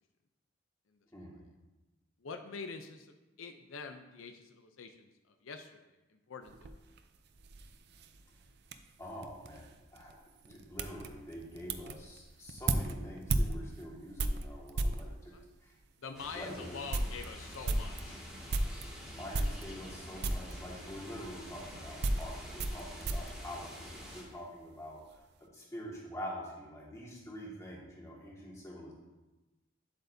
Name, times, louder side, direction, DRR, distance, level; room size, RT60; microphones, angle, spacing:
voice 1, 2.2-5.1 5.4-5.9 6.3-6.8 15.1-15.4 16.0-18.3, left 4 dB, 85° left, 6 dB, 0.6 m, -45 dB
sound 1, 6.4-15.1 15.8-15.9 16.3-16.4 16.7-18.9 19.3-20.0 20.2-20.6 21.4-24.3 24.6-25.2, right 2 dB, 55° right, 0.5 m, -36 dB
voice 2, 9.0-10.2 10.4-15.3 15.6-15.7 16.3-16.8 19.1-25.0 25.4-28.9, equal, 15° left, -4 dB, 1.8 m, -46 dB
sound 2, 16.1-24.2, equal, 5° right, 2.0 m, -47 dB
9.0 x 7.9 x 2.7 m, 1.1 s
head